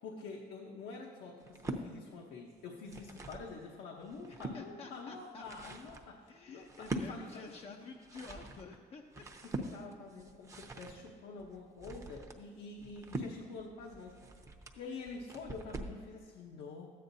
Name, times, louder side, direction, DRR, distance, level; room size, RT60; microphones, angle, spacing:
voice 1, 0.0-7.3 7.8-7.9 9.4-14.2 14.7-16.9, left 4 dB, 75° left, -1 dB, 0.9 m, -47 dB
sound 1, 1.4-1.9 2.6-3.5 4.0-4.6 5.2-16.0, right 2 dB, 20° right, 0.7 m, -44 dB
voice 2, 4.3-5.7 6.3-9.2, left 4 dB, 35° left, 3 dB, 0.5 m, -50 dB
13.0 x 8.7 x 2.7 m, 2.1 s
cardioid pair, 110°, 17 cm